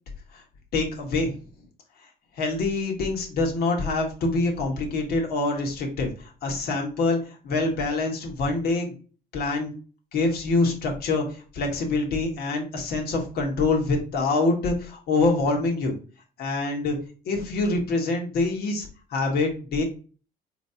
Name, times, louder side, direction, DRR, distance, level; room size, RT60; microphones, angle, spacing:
voice 1, 0.7-1.3 2.4-8.9 9.3-9.7 10.1-15.9 16.4-17.0 17.2-19.8, left 3 dB, 65° left, 1 dB, 1.5 m, -25 dB
4.5 x 3.1 x 2.8 m, 0.37 s
cardioid pair, 110°, 17 cm